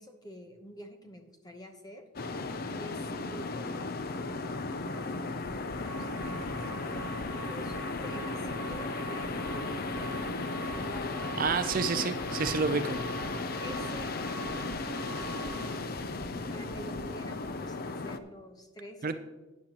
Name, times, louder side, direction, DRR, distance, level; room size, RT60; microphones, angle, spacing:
voice 1, 0.0-2.1 2.7-4.2 5.0-5.4 5.8-11.4 13.6-14.2 14.6-15.7 16.5-19.2, equal, 20° left, 5 dB, 0.9 m, -47 dB
sound 1, 2.2-18.2, left 3 dB, 45° left, 0.5 m, -35 dB
sound 2, 5.4-5.8 6.2-6.5 6.9-7.3 7.7-8.0 8.4-8.8 9.2-9.5 9.9-10.3 10.7-11.0 11.4-11.8 12.2-12.5 12.9-13.3 13.7-14.0 14.4-14.8 15.2-15.5 15.9-16.3 16.7-17.0 17.4-17.5, right 1 dB, 80° right, 1.2 m, -47 dB
sound 3, 5.8-15.8, right 3 dB, 75° left, 2.4 m, -43 dB
voice 2, 11.4-13.0 19.0-19.1, right 5 dB, 40° right, 10 dB, 0.4 m, -29 dB
13.0 x 9.6 x 2.9 m, 1.1 s
head